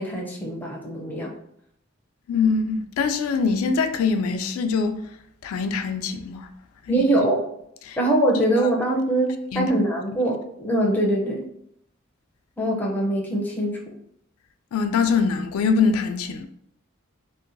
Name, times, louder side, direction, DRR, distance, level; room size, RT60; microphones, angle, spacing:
voice 1, 0.0-1.3 6.9-7.4 8.0-11.4 12.6-13.8, right 1 dB, 10° left, 0.4 m, -23 dB
voice 2, 2.3-5.0 5.4-6.5 6.9-7.0 7.9-8.0 9.5-9.7 14.7-16.5, left 5 dB, 90° left, 0.3 m, -23 dB
2.7 x 2.2 x 2.5 m
head